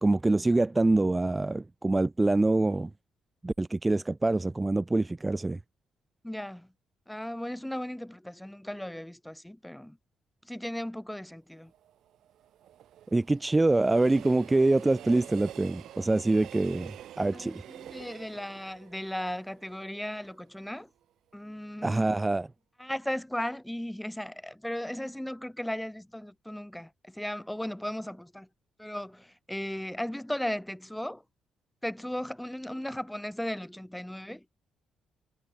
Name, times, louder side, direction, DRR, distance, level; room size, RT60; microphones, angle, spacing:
voice 1, 0.0-2.9 3.4-5.6 13.1-16.9 17.2-17.6 21.8-22.5, right 2 dB, 15° right, 0.5 m, -25 dB
voice 2, 6.2-6.7 7.1-10.0 10.5-11.7 17.3-20.9 21.3-22.1 22.8-28.5 28.8-31.2 31.8-34.4, left 1 dB, 5° left, 1.2 m, -36 dB
Train, 11.6-20.6 21.0-21.1, right 11 dB, 75° right, 2.7 m, -48 dB
cardioid pair, 90°, 0 cm